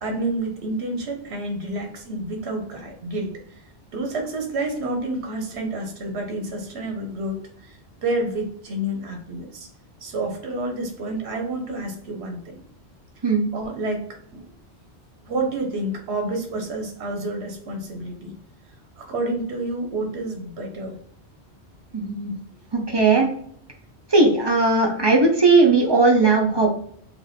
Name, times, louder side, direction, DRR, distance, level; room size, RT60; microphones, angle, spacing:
voice 1, 0.0-3.3 3.9-9.7 10.0-12.6 13.2-14.1 14.3-14.4 15.2-18.4 19.0-21.0, right 2 dB, 75° right, 3 dB, 1.1 m, -29 dB
voice 2, 21.9-22.3 22.7-23.3 24.1-26.7, right 3 dB, 35° right, 1 dB, 0.5 m, -17 dB
4.1 x 2.5 x 3.3 m, 0.62 s
omnidirectional pair, 1.1 m